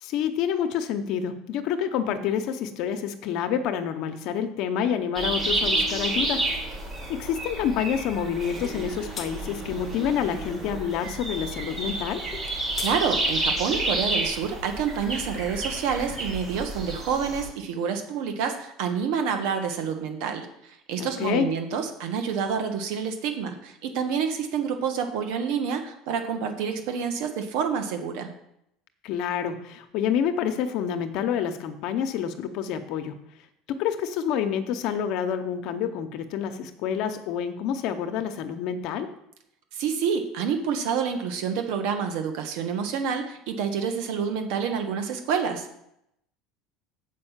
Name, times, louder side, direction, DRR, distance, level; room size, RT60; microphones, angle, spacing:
voice 1, 0.0-6.5 7.1-12.3 21.0-21.5 29.0-33.2 33.7-39.1, left 8 dB, 60° left, 8 dB, 0.8 m, -28 dB
sound 1, 5.1-17.5, right 2 dB, 25° right, 3.1 m, -30 dB
sound 2, 8.6-8.8 9.1-9.3 12.3-13.0, left 6 dB, 30° left, 1.0 m, -36 dB
voice 2, 12.8-28.3 39.7-45.8, right 6 dB, 75° right, 6 dB, 1.3 m, -28 dB
7.5 x 5.2 x 7.3 m, 0.78 s
supercardioid pair, 130°, 0 cm